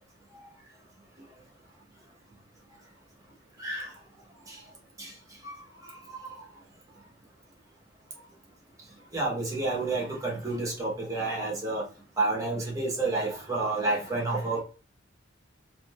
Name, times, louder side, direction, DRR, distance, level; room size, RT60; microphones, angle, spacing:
voice 1, 3.6-3.9 4.5-4.6 5.0-5.1 5.4-5.5 9.1-11.8 12.2-14.6, right 2 dB, 15° right, -3 dB, 1.2 m, -29 dB
3.7 x 2.7 x 2.5 m, 0.35 s
head